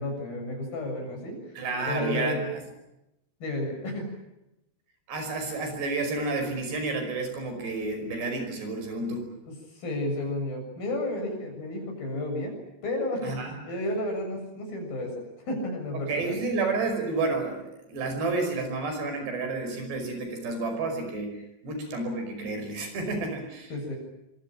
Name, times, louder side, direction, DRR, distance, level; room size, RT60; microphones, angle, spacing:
voice 1, 0.0-1.6 1.9-2.5 3.4-4.1 9.5-13.3 13.6-16.4 23.7-24.0, left 1 dB, 55° left, 3 dB, 8.8 m, -32 dB
voice 2, 1.6-2.4 5.1-9.3 13.2-13.5 16.1-23.7, right 3 dB, 70° right, 6 dB, 7.5 m, -30 dB
24.5 x 24.0 x 8.9 m, 0.91 s
omnidirectional pair, 5.1 m